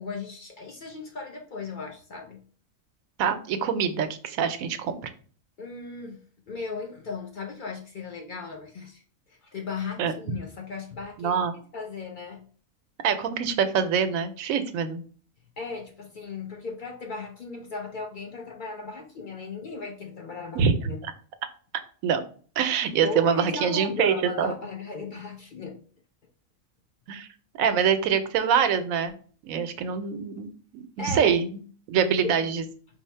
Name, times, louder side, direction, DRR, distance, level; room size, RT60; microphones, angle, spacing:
voice 1, 0.0-2.4 5.6-6.2 6.5-11.4 11.7-12.5 15.6-21.0 23.0-25.8 31.0-31.3 32.2-32.5, left 4 dB, 60° left, 3 dB, 0.5 m, -36 dB
voice 2, 3.2-5.1 10.0-10.1 11.2-11.6 13.0-15.0 20.6-20.7 22.0-22.2 22.6-24.5 27.1-27.3 27.6-29.1 29.4-31.5 31.9-32.6, right 7 dB, 85° right, 10 dB, 1.0 m, -25 dB
4.5 x 2.0 x 4.2 m, 0.43 s
omnidirectional pair, 1.4 m